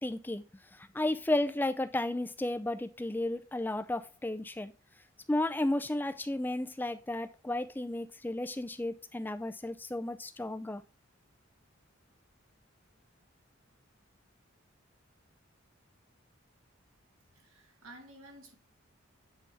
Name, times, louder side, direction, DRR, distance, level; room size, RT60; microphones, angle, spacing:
voice 1, 0.0-0.4 0.7-4.7 5.3-10.8, left 1 dB, 10° left, 0.4 m, -33 dB
voice 2, 17.3-18.5, right 1 dB, 80° right, 1.9 m, -52 dB
8.4 x 3.5 x 4.1 m
head